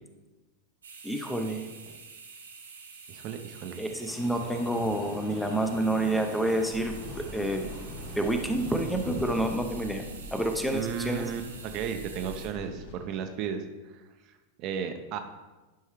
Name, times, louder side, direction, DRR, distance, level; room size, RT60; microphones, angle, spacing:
sound 1, 0.8-12.5, right 5 dB, 70° right, 1.2 m, -47 dB
voice 1, 1.0-1.7 3.8-7.7 8.2-10.0 10.3-11.3, right 1 dB, ahead, 4 dB, 0.7 m, -28 dB
voice 2, 3.1-3.8 10.7-14.3 14.6-15.2, right 7 dB, 40° right, 6 dB, 0.6 m, -35 dB
sound 2, 4.1-9.6, left 1 dB, 35° left, 1.8 m, -42 dB
sound 3, 6.7-13.0, left 2 dB, 65° left, 1.5 m, -44 dB
10.5 x 5.5 x 3.1 m, 1.2 s
figure-of-eight pair, 90°, 0 cm